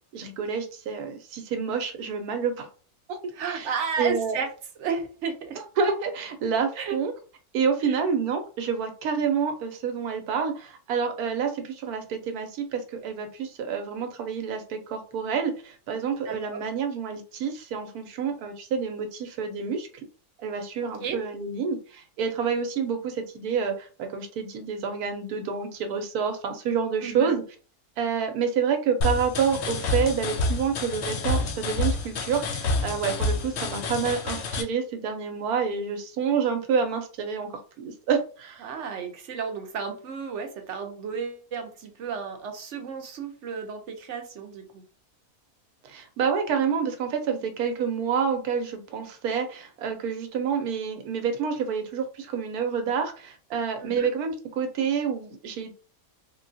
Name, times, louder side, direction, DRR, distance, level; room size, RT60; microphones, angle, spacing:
voice 1, 0.1-2.7 3.1-3.2 3.5-3.7 4.0-4.4 5.6-7.1 7.5-19.9 20.4-27.4 28.0-37.5 37.8-38.7 45.9-55.7, right 6 dB, 85° right, 6 dB, 1.2 m, -28 dB
voice 2, 3.3-4.5 4.8-5.6 6.7-7.0 7.9-8.0 16.2-16.7 20.8-21.2 27.0-27.4 38.6-44.8 53.8-54.1, right 6 dB, 60° right, 5 dB, 0.9 m, -33 dB
sound 1, 29.0-34.6, left 2 dB, 65° left, 0.7 m, -28 dB
3.6 x 2.2 x 2.6 m, 0.37 s
omnidirectional pair, 1.6 m